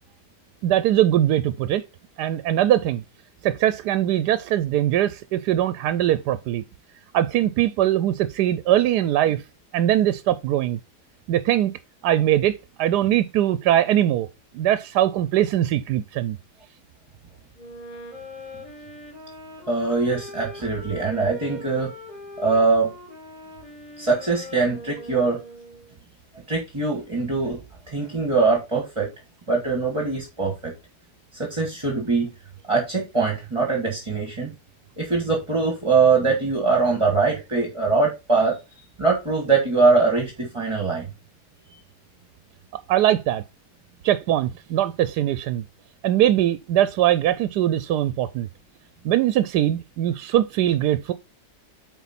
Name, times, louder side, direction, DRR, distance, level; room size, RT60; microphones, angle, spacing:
voice 1, 0.6-1.8 2.2-3.0 3.4-6.6 7.1-9.4 9.7-10.8 11.3-11.7 12.0-14.3 14.5-16.4 42.9-43.4 44.0-45.6 46.0-48.5 49.0-51.1, right 12 dB, 80° right, 1.1 m, -21 dB
Wind instrument woodwind instrument, 17.6-25.9, left 1 dB, 25° left, 3.4 m, -41 dB
voice 2, 19.7-21.9 22.4-22.9 24.0-25.4 26.5-27.6 27.9-29.1 29.5-30.7 31.4-32.3 32.7-34.5 35.0-38.6 39.0-41.1, right 4 dB, 20° right, 1.5 m, -22 dB
8.2 x 4.3 x 4.1 m
omnidirectional pair, 1.8 m